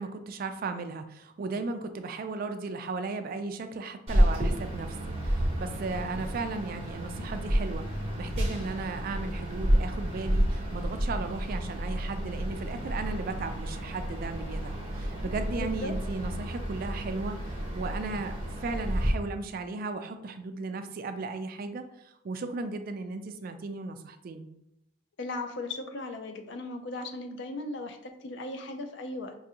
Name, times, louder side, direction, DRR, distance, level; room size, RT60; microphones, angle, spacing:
voice 1, 0.0-24.5, right 3 dB, 45° right, 8 dB, 0.3 m, -36 dB
sound 1, 4.1-19.1, equal, 30° right, 0.9 m, -30 dB
voice 2, 15.6-15.9 25.2-29.3, left 2 dB, 60° left, 6 dB, 0.4 m, -37 dB
4.7 x 2.5 x 2.7 m, 0.84 s
head